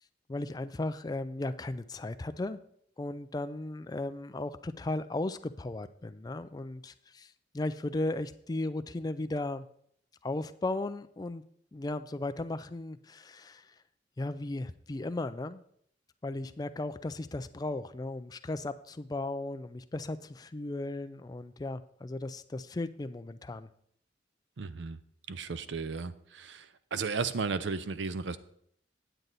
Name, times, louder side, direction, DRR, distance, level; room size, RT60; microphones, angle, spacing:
voice 1, 0.3-2.6 3.0-9.7 10.2-11.4 11.7-13.7 14.2-15.6 16.2-23.7, left 2 dB, 20° left, 10 dB, 0.4 m, -36 dB
voice 2, 24.6-25.0 25.3-26.7 26.9-28.4, right 5 dB, 80° right, 14 dB, 0.5 m, -34 dB
9.0 x 7.9 x 4.0 m, 0.67 s
head